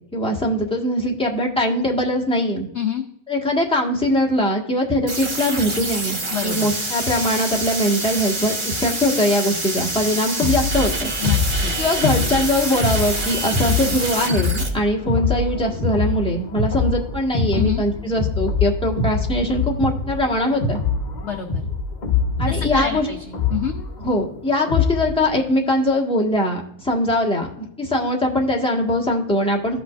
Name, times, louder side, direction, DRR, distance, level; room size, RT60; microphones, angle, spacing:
voice 1, 0.1-2.7 3.3-11.1 11.8-20.8 22.4-23.1 24.0-29.8, left 1 dB, 5° left, -2 dB, 1.5 m, -21 dB
voice 2, 2.7-3.1 6.3-6.7 11.2-11.7 17.5-17.8 21.2-21.6 22.5-23.7, left 8 dB, 55° left, 4 dB, 0.9 m, -27 dB
sound 1, 5.1-14.7, right 2 dB, 35° right, 1.4 m, -26 dB
sound 2, 10.4-25.2, left 4 dB, 30° left, 1.1 m, -24 dB
15.0 x 5.8 x 2.5 m, 0.74 s
omnidirectional pair, 1.7 m